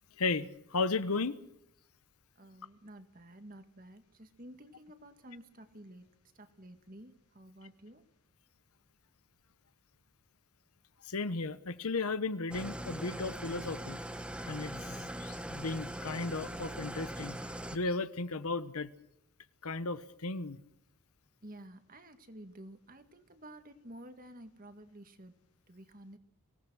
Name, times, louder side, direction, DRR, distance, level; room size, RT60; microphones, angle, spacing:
voice 1, 0.2-1.4 11.0-14.0 14.5-17.4 17.7-18.9 19.6-20.6, left 3 dB, 80° left, 1.1 m, -35 dB
voice 2, 2.4-6.1 6.3-8.0 21.4-25.4 25.7-26.2, right 1 dB, 40° right, 1.9 m, -52 dB
Engine starting / Idling, 12.5-17.8, right 1 dB, 5° right, 1.3 m, -41 dB
24.5 x 17.5 x 6.3 m
head